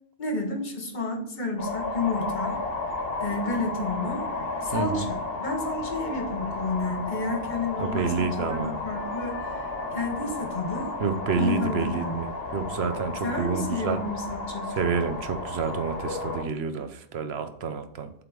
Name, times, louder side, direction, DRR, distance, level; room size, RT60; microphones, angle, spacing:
voice 1, 0.2-2.6 3.2-4.2 4.6-9.6 9.9-10.9 11.3-12.3 13.2-14.7, left 3 dB, 50° left, 2 dB, 1.5 m, -31 dB
sound 1, 1.6-16.4, left 3 dB, 70° left, 1.3 m, -33 dB
voice 2, 4.7-5.1 7.8-8.8 11.0-14.0 14.7-18.1, right 5 dB, 85° right, 8 dB, 1.0 m, -29 dB
7.9 x 3.8 x 5.1 m, 0.66 s
omnidirectional pair, 1.0 m